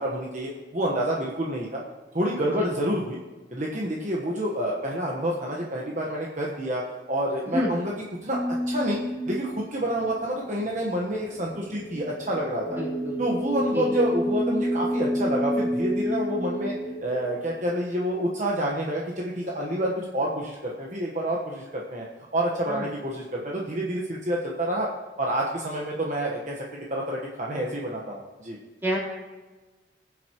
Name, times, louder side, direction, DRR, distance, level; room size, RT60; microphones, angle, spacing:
voice 1, 0.0-1.8 2.1-3.2 3.5-6.8 7.1-7.9 8.2-8.4 8.7-9.0 9.3-12.8 13.2-16.7 17.0-22.0 22.3-24.9 25.2-26.6 26.9-28.6, right 1 dB, 45° right, -2 dB, 1.2 m, -28 dB
sound 1, 8.3-18.1, equal, 5° left, 2.3 m, -30 dB
voice 2, 12.8-13.2 13.7-13.9 22.7-22.9 28.8-29.0, equal, 15° right, -6 dB, 3.6 m, -28 dB
22.5 x 7.7 x 3.0 m, 1.2 s
head